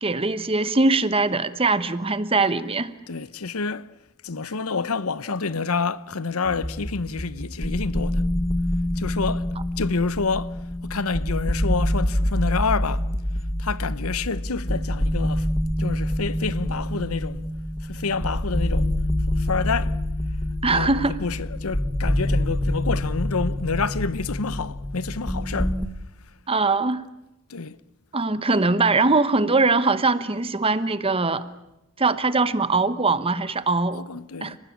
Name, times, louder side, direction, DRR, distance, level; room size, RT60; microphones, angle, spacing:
voice 1, 0.0-2.9 20.6-21.2 26.5-27.0 28.1-31.4 32.0-34.0 34.4-34.6, right 3 dB, 25° right, 1.1 m, -21 dB
voice 2, 3.1-3.9 4.2-8.2 9.0-9.5 9.8-13.1 13.6-15.5 15.8-17.5 17.8-18.9 19.4-20.0 20.7-25.8 27.5-27.8 33.9-34.6, left 4 dB, 75° left, 0.9 m, -28 dB
sound 1, 6.4-25.9, left 1 dB, 15° left, 1.4 m, -26 dB
29.5 x 19.5 x 8.8 m
head